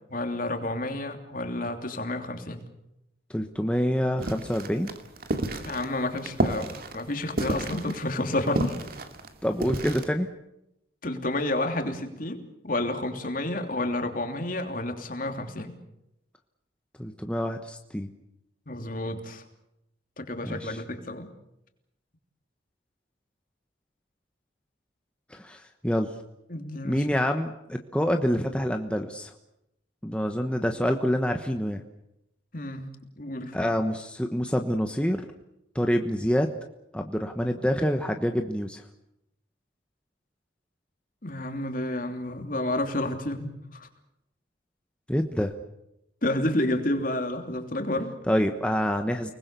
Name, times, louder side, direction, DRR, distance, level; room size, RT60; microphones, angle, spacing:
voice 1, 0.1-2.6 5.6-8.7 11.0-12.4 12.6-15.8 18.7-19.4 20.2-21.3 26.5-27.0 32.5-32.9 33.2-33.7 41.2-43.9 46.2-48.2, left 1 dB, 45° left, 5 dB, 3.1 m, -30 dB
voice 2, 3.3-4.9 9.4-10.3 17.0-18.1 20.4-20.8 25.3-26.1 26.8-29.3 30.0-31.8 33.5-35.3 35.7-36.5 36.9-38.8 45.1-45.5 48.3-49.3, equal, 5° left, 4 dB, 1.2 m, -27 dB
sound 1, 4.2-10.0, right 1 dB, 55° right, 2.3 m, -31 dB
30.0 x 20.5 x 6.9 m, 0.84 s
head